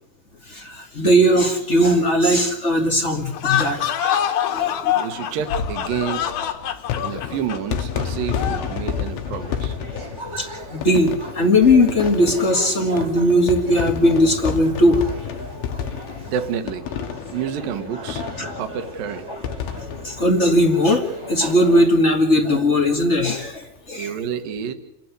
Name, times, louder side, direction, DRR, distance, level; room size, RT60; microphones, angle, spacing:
voice 1, 0.5-4.0 4.5-5.0 10.4-15.0 18.4-18.5 20.0-24.2, left 1 dB, 25° left, 2 dB, 1.7 m, -18 dB
sound 1, 3.3-8.8, left 10 dB, 75° left, 3.2 m, -25 dB
voice 2, 4.9-6.3 7.0-9.8 16.3-16.8 17.3-19.3 24.0-24.7, right 8 dB, 70° right, 9 dB, 3.0 m, -29 dB
sound 2, 5.4-21.4 21.7-21.8 22.0-22.1 23.4-23.6, left 8 dB, 90° left, 3.2 m, -31 dB
sound 3, 8.2-21.9, right 1 dB, 20° right, 2.2 m, -38 dB
29.0 x 10.5 x 9.7 m, 0.95 s
omnidirectional pair, 4.3 m